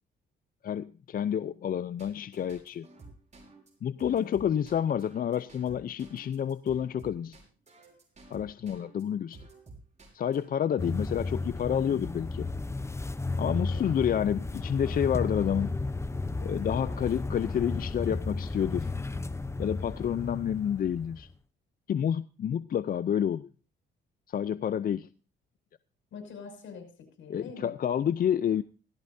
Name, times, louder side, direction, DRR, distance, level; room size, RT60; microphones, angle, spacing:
voice 1, 0.6-2.9 3.8-7.4 8.3-9.4 10.1-12.5 13.4-15.8 16.4-18.9 19.6-21.3 21.9-23.5 24.3-25.1 27.3-28.6, left 9 dB, 45° left, 0.6 m, -29 dB
sound 1, 2.0-9.0 9.3-10.5, right 3 dB, 35° right, 5.7 m, -51 dB
voice 2, 4.1-4.4 10.9-11.1 13.5-13.9 26.1-27.7, left 5 dB, 75° left, 5.9 m, -45 dB
sound 2, 10.8-21.3, left 3 dB, 15° left, 0.8 m, -33 dB
17.0 x 14.5 x 2.7 m
cardioid pair, 90°, 20 cm